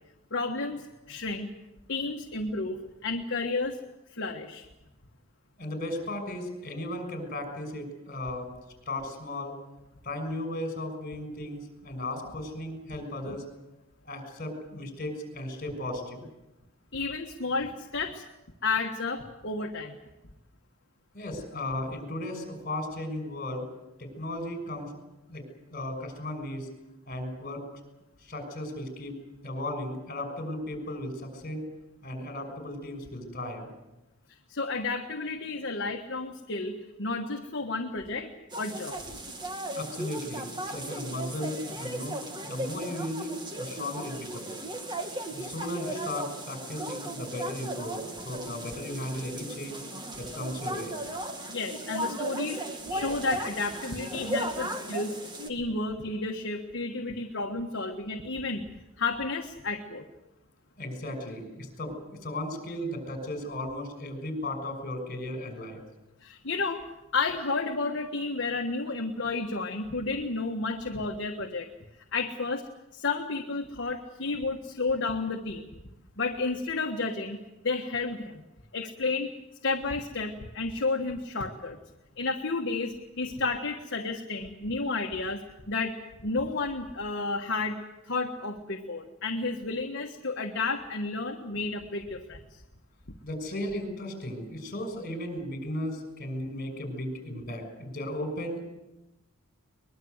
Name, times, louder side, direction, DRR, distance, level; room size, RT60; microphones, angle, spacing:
voice 1, 0.3-1.5 1.9-3.8 4.1-4.7 13.3-13.4 16.9-18.2 18.6-20.0 34.5-36.7 37.0-39.0 51.5-55.2 55.5-58.7 59.0-60.1 66.2-66.9 67.1-71.7 72.1-75.7 76.2-77.4 77.6-78.4 78.7-79.3 79.6-81.8 82.2-85.4 85.7-87.8 88.0-92.6, left 3 dB, 55° left, 2 dB, 1.5 m, -31 dB
voice 2, 5.6-8.5 8.9-9.5 10.0-13.4 14.0-16.3 21.1-23.7 24.0-24.9 25.3-25.4 25.7-26.7 27.1-27.6 28.2-29.2 29.4-31.7 32.0-33.7 39.7-44.6 45.3-49.8 50.2-51.0 60.8-65.8 93.2-98.6, left 1 dB, 40° left, 6 dB, 6.2 m, -36 dB
sound 1, 38.5-55.5, right 1 dB, 20° right, 2.1 m, -36 dB
22.5 x 21.5 x 8.0 m, 0.98 s
head